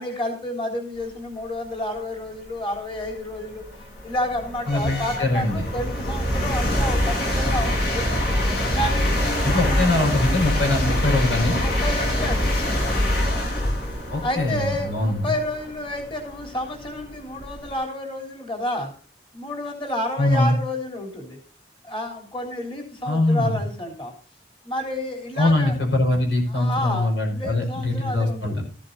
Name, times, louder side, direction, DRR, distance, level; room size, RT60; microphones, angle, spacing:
voice 1, 0.0-3.6 4.0-8.3 8.7-9.9 11.6-12.9 13.4-13.6 14.2-18.9 19.3-21.4 21.8-24.1 24.6-25.8 26.5-28.6, left 1 dB, 30° left, 2 dB, 3.5 m, -30 dB
sound 1, 2.3-2.4 3.0-17.7, left 1 dB, 55° left, 4.8 m, -25 dB
voice 2, 4.7-5.7 9.4-11.6 14.1-15.3 20.2-20.6 23.1-23.6 25.4-28.6, left 2 dB, 75° left, 2 dB, 5.7 m, -22 dB
14.5 x 11.5 x 2.8 m, 0.41 s
head